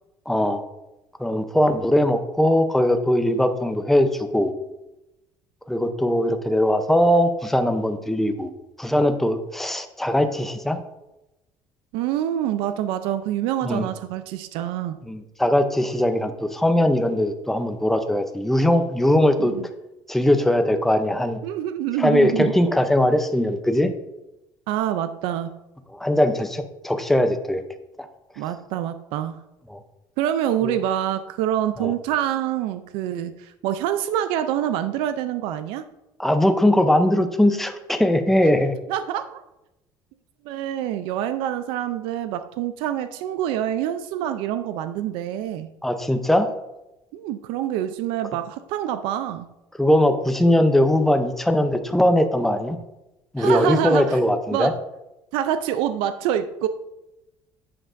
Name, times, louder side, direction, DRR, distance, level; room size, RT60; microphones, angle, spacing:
voice 1, 0.3-0.6 1.2-4.5 5.7-8.5 8.8-10.8 13.6-13.9 15.1-19.5 20.1-21.4 22.0-23.9 25.9-27.6 28.0-28.1 29.7-29.8 30.6-30.8 31.8-31.9 36.2-38.7 45.8-46.5 49.8-52.8 53.3-54.7, left 1 dB, 5° left, 7 dB, 0.6 m, -20 dB
voice 2, 11.9-15.0 19.4-19.7 21.4-22.5 24.7-25.5 28.4-29.3 30.2-35.9 38.9-39.4 40.4-45.7 47.1-49.5 53.4-54.2 54.5-54.7 55.3-56.7, right 11 dB, 90° right, 10 dB, 0.4 m, -26 dB
11.0 x 7.8 x 2.6 m, 0.95 s
cardioid pair, 160°, 9 cm